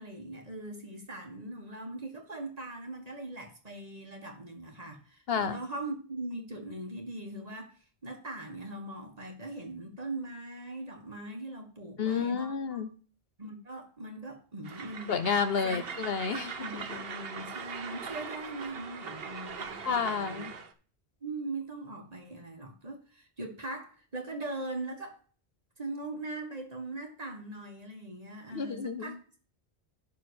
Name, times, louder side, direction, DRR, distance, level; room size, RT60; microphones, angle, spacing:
voice 1, 0.0-12.8 13.4-15.2 15.6-15.9 16.6-20.5 21.2-25.2 25.8-29.4, right 2 dB, 35° right, 1.9 m, -41 dB
voice 2, 12.0-12.9 15.1-16.8 19.8-20.5 28.5-29.1, left 6 dB, 65° left, 1.1 m, -30 dB
Train, 14.6-20.7, right 5 dB, 65° right, 1.2 m, -41 dB
12.0 x 4.3 x 6.4 m
omnidirectional pair, 1.1 m